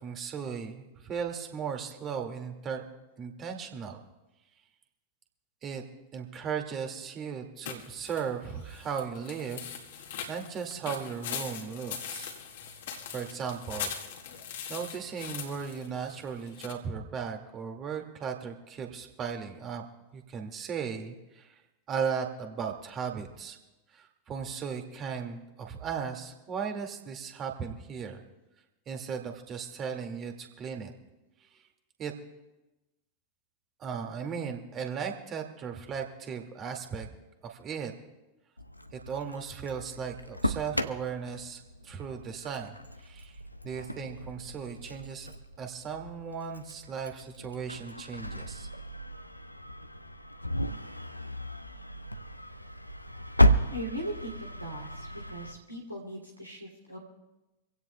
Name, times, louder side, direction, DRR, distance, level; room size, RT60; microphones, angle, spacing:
voice 1, 0.0-2.8 3.2-4.0 5.6-5.8 6.1-9.7 10.0-12.3 13.1-13.9 14.7-19.8 20.1-21.6 21.9-23.6 23.9-28.2 28.9-30.9 31.5-31.6 32.0-32.1 33.8-37.1 37.4-37.9 38.9-43.4 43.6-48.7, right 6 dB, 30° right, 4 dB, 2.0 m, -36 dB
sound 1, 7.6-16.7, left 8 dB, 55° left, 1.8 m, -41 dB
Engine starting, 38.6-55.5, equal, 85° left, 0.7 m, -33 dB
voice 2, 53.7-57.0, right 1 dB, 90° right, -2 dB, 2.6 m, -39 dB
25.5 x 16.5 x 2.2 m, 1.0 s
figure-of-eight pair, 90°, 0 cm